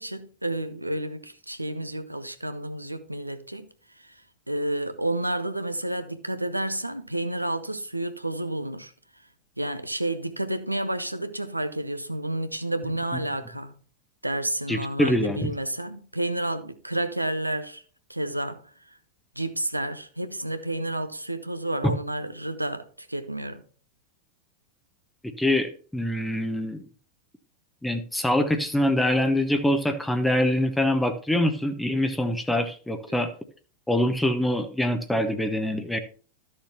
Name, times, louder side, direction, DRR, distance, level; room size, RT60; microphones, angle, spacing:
voice 1, 0.0-3.7 4.0-4.2 4.5-8.9 9.6-13.8 14.2-17.8 18.1-19.0 19.4-23.6 33.1-33.2, right 1 dB, 85° right, 0.7 m, -30 dB
voice 2, 14.7-15.5 21.8-21.9 25.4-26.8 27.8-33.3 33.9-36.0, left 1 dB, 5° left, 0.8 m, -24 dB
13.0 x 6.6 x 2.9 m
figure-of-eight pair, 90°, 0 cm